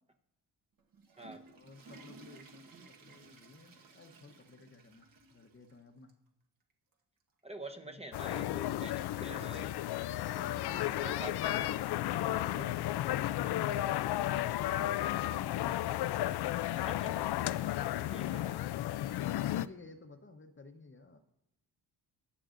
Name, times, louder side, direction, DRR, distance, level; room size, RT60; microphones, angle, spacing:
Water / Toilet flush, 0.8-5.8 6.1-6.2 6.9-7.0 8.3-8.4, right 3 dB, 55° right, 1.3 m, -56 dB
voice 1, 1.5-2.6 3.0-6.1 7.8-8.0 10.3-14.9 19.2-21.2, left 3 dB, 30° left, 6 dB, 0.9 m, -53 dB
voice 2, 7.4-9.8 11.0-11.6 12.1-12.7 16.7-17.1 17.6-17.8 18.1-18.6, right 2 dB, 15° right, 3 dB, 0.9 m, -47 dB
sound 1, 8.1-19.7, left 13 dB, 70° left, 0.5 m, -33 dB
21.0 x 7.5 x 2.6 m, 0.90 s
cardioid pair, 95°, 41 cm